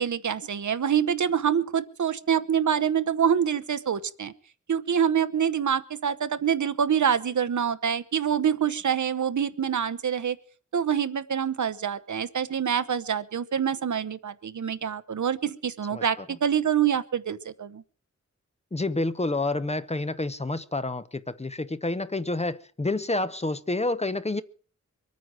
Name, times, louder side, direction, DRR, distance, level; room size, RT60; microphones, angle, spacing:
voice 1, 0.0-4.3 4.7-10.4 10.7-17.8, right 8 dB, 75° right, 1.0 m, -26 dB
voice 2, 18.7-24.4, left 2 dB, 20° left, 0.8 m, -29 dB
23.0 x 9.3 x 6.2 m
wide cardioid pair, 100°, 30 cm